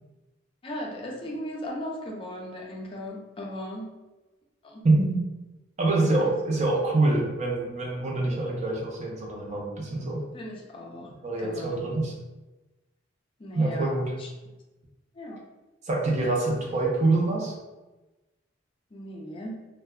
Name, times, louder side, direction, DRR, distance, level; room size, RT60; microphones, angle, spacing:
voice 1, 0.6-3.9 4.6-4.8 5.9-6.3 10.3-11.1 11.4-11.8 13.4-13.9 14.2-14.3 15.1-15.4 18.9-19.6, left 1 dB, 30° left, -1 dB, 0.4 m, -37 dB
voice 2, 4.8-5.2 5.8-10.2 11.2-12.1 13.5-14.1 15.8-17.5, right 2 dB, 40° right, -2 dB, 0.5 m, -25 dB
2.1 x 2.1 x 3.4 m, 1.1 s
head